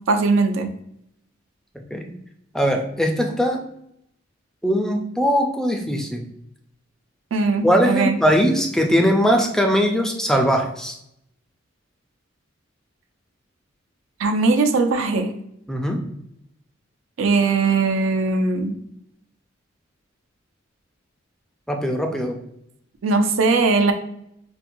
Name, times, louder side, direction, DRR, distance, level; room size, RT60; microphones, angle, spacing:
voice 1, 0.1-0.7 7.3-8.2 14.2-15.3 17.2-18.7 23.0-23.9, right 3 dB, 75° right, 6 dB, 0.4 m, -19 dB
voice 2, 2.5-3.6 4.6-6.3 7.6-11.0 15.7-16.0 21.7-22.4, equal, 5° left, 3 dB, 0.4 m, -20 dB
4.2 x 2.2 x 2.6 m, 0.75 s
head